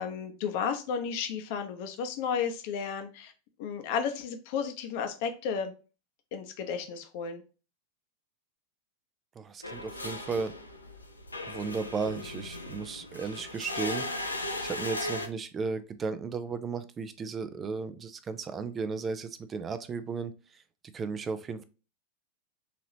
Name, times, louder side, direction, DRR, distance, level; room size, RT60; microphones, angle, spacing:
voice 1, 0.0-3.3 3.6-5.7 6.3-7.4, left 6 dB, 50° left, 0.8 m, -33 dB
voice 2, 9.4-10.5 11.5-14.1 14.6-20.6 20.9-21.6, right 5 dB, 20° right, 0.5 m, -35 dB
sound 1, 9.6-15.3, left 2 dB, 80° left, 0.6 m, -37 dB
4.1 x 2.9 x 2.7 m
figure-of-eight pair, 90°, 0 cm